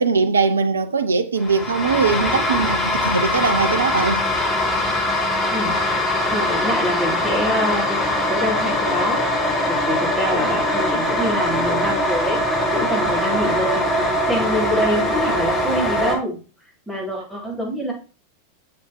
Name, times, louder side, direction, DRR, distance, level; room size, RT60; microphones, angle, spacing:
voice 1, 0.0-4.2 12.8-12.9 13.3-13.4, right 4 dB, 75° right, 0.7 m, -21 dB
sound 1, 1.4-16.2, left 1 dB, 15° left, 5.0 m, -22 dB
voice 2, 6.3-8.0 8.3-12.4 12.7-16.4 16.9-17.9, equal, 5° right, 4.5 m, -25 dB
7.2 x 6.1 x 4.5 m
figure-of-eight pair, 90°, 0 cm